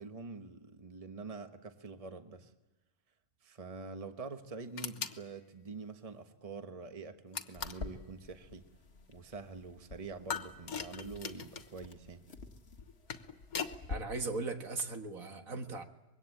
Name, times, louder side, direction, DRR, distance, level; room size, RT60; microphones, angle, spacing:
voice 1, 0.0-2.5 3.4-8.6 9.1-12.2, right 4 dB, 25° right, 7 dB, 1.3 m, -46 dB
sound 1, 4.8-5.2 7.3-7.9 10.3-11.7 12.8-13.8, left 7 dB, 80° left, 1.7 m, -40 dB
sound 2, 7.5-14.0, left 4 dB, 45° left, 1.8 m, -49 dB
voice 2, 13.9-15.8, right 3 dB, 70° right, 6 dB, 2.1 m, -38 dB
25.0 x 22.0 x 8.6 m, 1.0 s
omnidirectional pair, 1.5 m